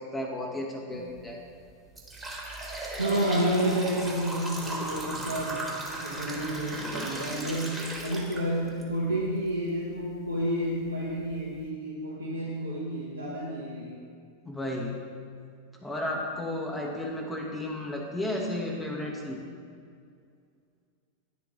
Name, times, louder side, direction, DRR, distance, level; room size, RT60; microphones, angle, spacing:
voice 1, 0.0-1.4 14.4-15.0 15.8-19.4, left 1 dB, 10° left, -1 dB, 0.7 m, -33 dB
sound 1, 1.0-1.2 1.7-8.8 9.3-9.4 10.2-10.3 10.8-10.9 11.4-11.6, right 1 dB, 10° right, 1.1 m, -36 dB
voice 2, 3.0-5.6 6.0-14.0, right 1 dB, 80° right, -6 dB, 0.7 m, -30 dB
10.0 x 3.4 x 3.0 m, 2.2 s
figure-of-eight pair, 90°, 0 cm